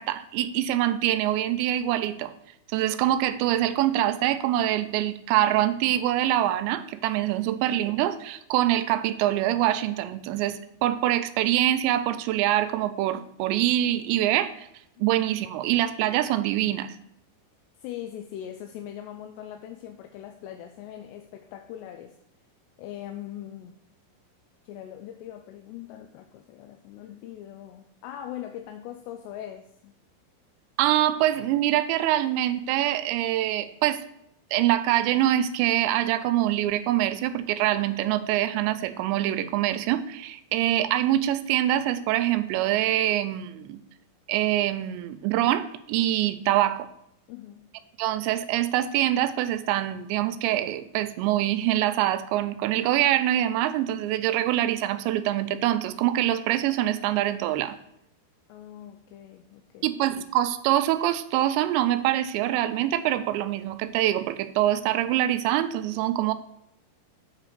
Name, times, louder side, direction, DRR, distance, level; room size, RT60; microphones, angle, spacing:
voice 1, 0.0-2.3 2.7-14.7 15.0-17.0 30.8-34.0 34.5-43.8 44.3-46.9 48.0-57.8 59.8-66.3, right 13 dB, 85° right, 11 dB, 2.8 m, -24 dB
voice 2, 17.8-22.2 22.8-23.8 24.6-30.0 47.3-47.7 58.5-59.9, left 11 dB, 85° left, 6 dB, 2.6 m, -41 dB
8.1 x 4.0 x 6.6 m, 0.77 s
omnidirectional pair, 5.2 m